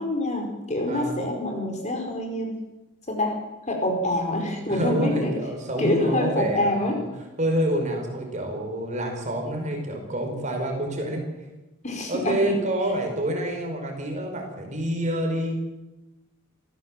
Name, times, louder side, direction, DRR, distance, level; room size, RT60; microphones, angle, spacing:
voice 1, 0.0-2.6 3.1-3.3 3.7-5.3 5.8-7.0 11.8-12.7, left 1 dB, 35° left, 2 dB, 4.8 m, -26 dB
voice 2, 0.9-1.2 4.7-7.1 7.4-11.3 12.1-15.6, right 1 dB, 35° right, 3 dB, 5.0 m, -27 dB
27.0 x 15.5 x 7.7 m, 1.0 s
head